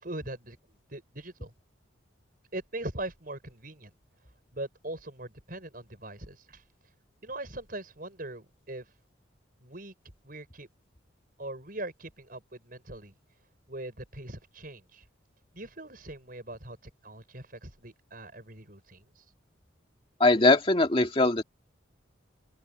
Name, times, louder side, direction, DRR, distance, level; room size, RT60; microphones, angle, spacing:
voice 1, 0.0-1.5 2.5-3.9 4.5-6.6 7.2-8.9 9.6-9.9 10.2-10.7 11.4-13.1 13.7-15.0 15.5-16.8 17.0-19.2, right 1 dB, 45° right, 6.1 m, -41 dB
voice 2, 20.2-21.4, left 2 dB, 30° left, 2.2 m, -21 dB
open air
head